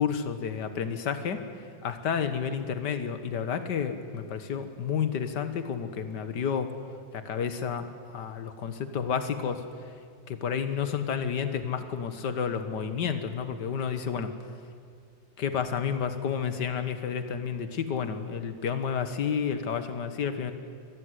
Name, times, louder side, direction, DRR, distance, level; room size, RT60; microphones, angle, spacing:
voice 1, 0.0-1.4 1.8-6.7 7.1-9.6 10.3-14.3 15.4-20.5, left 7 dB, 65° left, 10 dB, 2.0 m, -30 dB
25.0 x 14.0 x 9.8 m, 2.2 s
omnidirectional pair, 2.0 m